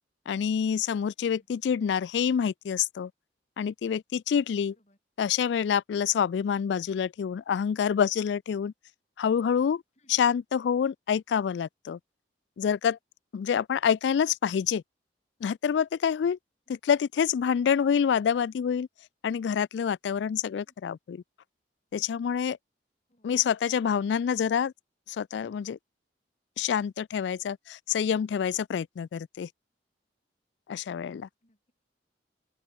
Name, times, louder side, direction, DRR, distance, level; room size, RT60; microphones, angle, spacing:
voice 1, 0.3-3.1 3.6-4.7 5.2-8.7 9.2-9.8 10.1-12.0 12.6-13.0 13.3-14.8 15.4-16.4 16.8-18.9 19.2-21.2 21.9-22.6 23.2-24.7 25.1-25.8 26.6-29.5 30.7-31.3, left 7 dB, 75° left, 0.3 m, -27 dB
voice 2, 1.1-1.5 4.7-5.0 10.0-10.3 16.7-16.8 20.6-20.7 23.1-23.4 31.4-31.7, left 1 dB, 40° left, 7.4 m, -66 dB
open air
head